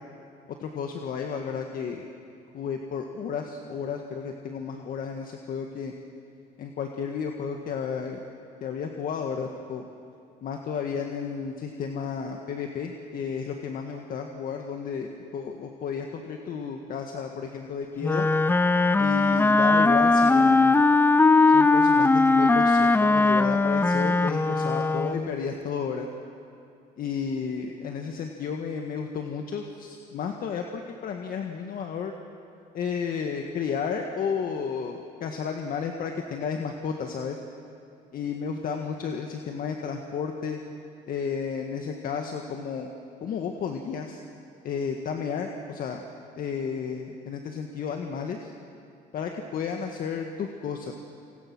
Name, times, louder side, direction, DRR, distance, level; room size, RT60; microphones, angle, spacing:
voice 1, 0.6-2.1 2.5-5.9 6.6-8.2 8.6-9.8 10.4-18.3 19.0-20.9 21.5-26.1 27.0-32.1 32.7-37.4 38.1-40.6 41.1-42.9 43.2-44.2 44.6-46.0 46.4-48.5 49.1-50.9, left 6 dB, 55° left, 3 dB, 1.8 m, -32 dB
Wind instrument woodwind instrument, 18.0-25.4, left 3 dB, 10° left, 0.6 m, -20 dB
28.0 x 25.5 x 6.2 m, 2.6 s
cardioid pair, 110°, 17 cm